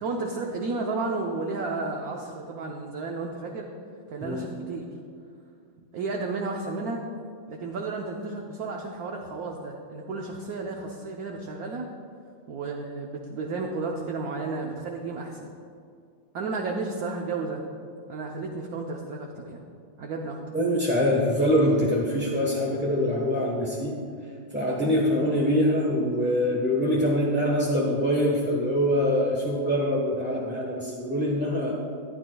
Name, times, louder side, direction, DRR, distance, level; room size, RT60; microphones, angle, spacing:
voice 1, 0.0-3.7 4.1-4.9 5.9-7.0 7.5-11.9 12.5-15.5 16.3-17.6 18.1-19.7 20.0-20.4, right 3 dB, 60° right, 0 dB, 1.1 m, -32 dB
voice 2, 20.5-23.9 24.5-31.7, equal, 10° right, -5 dB, 0.7 m, -24 dB
14.5 x 9.8 x 2.3 m, 2.4 s
omnidirectional pair, 2.1 m